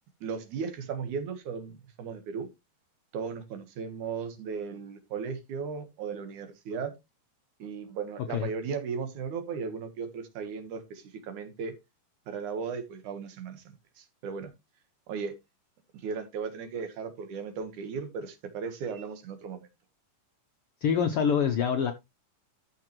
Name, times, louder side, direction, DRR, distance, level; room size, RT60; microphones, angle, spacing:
voice 1, 0.2-2.5 3.1-6.9 7.6-11.7 12.3-14.5 15.1-15.3 15.9-19.7, right 6 dB, 70° right, 2.8 m, -36 dB
voice 2, 20.8-21.9, left 7 dB, 80° left, 1.2 m, -25 dB
13.5 x 5.8 x 3.1 m
omnidirectional pair, 3.8 m